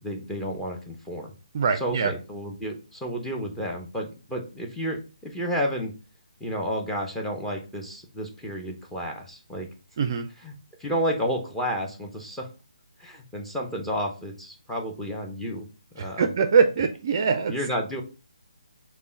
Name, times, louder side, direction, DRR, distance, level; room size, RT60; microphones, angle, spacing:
voice 1, 0.0-1.3 1.7-5.9 6.4-9.7 10.4-10.5 10.8-12.5 13.0-15.7 15.9-16.3 17.5-18.0, equal, 5° left, 0 dB, 0.7 m, -31 dB
voice 2, 1.5-2.1 10.0-10.3 16.0-17.5, right 5 dB, 35° right, 7 dB, 0.4 m, -23 dB
5.1 x 2.2 x 4.3 m, 0.33 s
figure-of-eight pair, 145°, 3 cm